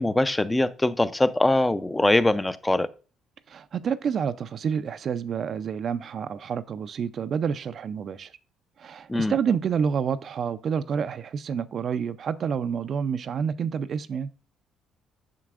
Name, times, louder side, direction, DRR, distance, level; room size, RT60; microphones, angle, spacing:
voice 1, 0.0-2.9 9.1-9.4, left 2 dB, 15° left, 0.4 m, -22 dB
voice 2, 3.5-8.3 8.8-14.3, right 7 dB, 55° right, 0.4 m, -28 dB
7.4 x 5.8 x 2.4 m
hypercardioid pair, 55°, 0 cm